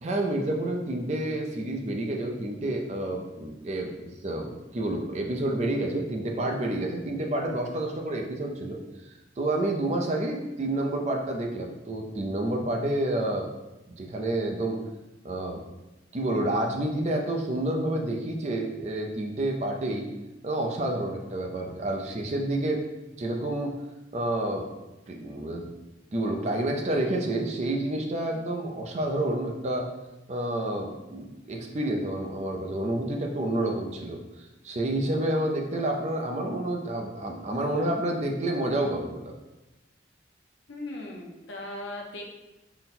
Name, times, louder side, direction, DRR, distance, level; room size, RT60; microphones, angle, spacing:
voice 1, 0.0-3.9 4.2-8.8 9.4-13.5 14.0-14.8 15.2-15.6 16.1-20.1 20.4-22.9 23.2-23.8 24.1-24.7 25.1-25.7 26.1-29.9 30.3-39.3, right 1 dB, 35° right, 2 dB, 0.4 m, -29 dB
voice 2, 40.7-42.3, left 1 dB, 90° left, 0 dB, 0.7 m, -38 dB
3.9 x 2.1 x 4.2 m, 1.0 s
head